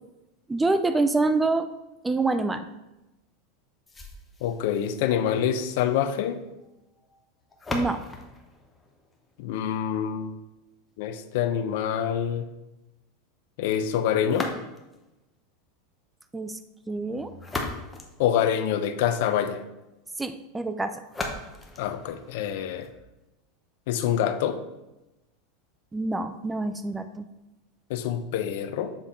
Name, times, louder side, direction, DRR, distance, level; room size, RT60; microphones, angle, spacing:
voice 1, 0.5-1.7 2.0-2.7 7.7-8.0 16.3-16.6 16.9-17.3 20.2-21.0 25.9-27.3, right 3 dB, 10° right, 10 dB, 0.3 m, -26 dB
sound 1, 3.9-9.8 14.2-15.1 17.1-19.0 21.0-23.0, left 2 dB, 10° left, 0.7 m, -39 dB
voice 2, 4.4-6.4 9.4-10.4 11.0-12.5 13.6-14.5 18.2-19.6 21.8-22.9 23.9-24.6 27.9-29.0, left 9 dB, 65° left, 10 dB, 0.5 m, -26 dB
7.1 x 3.7 x 4.3 m, 0.98 s
supercardioid pair, 150°, 0 cm